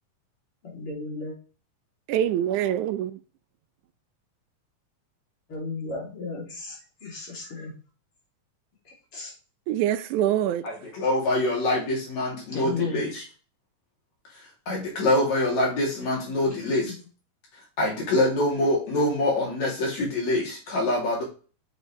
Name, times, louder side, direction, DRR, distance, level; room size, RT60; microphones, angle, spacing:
voice 1, 0.6-1.4 5.5-7.8 8.9-9.3 12.5-13.0 16.6-17.0, left 3 dB, 50° left, 3.7 m, -35 dB
voice 2, 2.1-3.1 9.7-10.7, right 11 dB, 85° right, 2.1 m, -24 dB
voice 3, 10.6-13.2 14.7-16.9 17.8-21.2, left 1 dB, 70° left, 4.1 m, -25 dB
7.8 x 6.6 x 3.2 m
omnidirectional pair, 3.4 m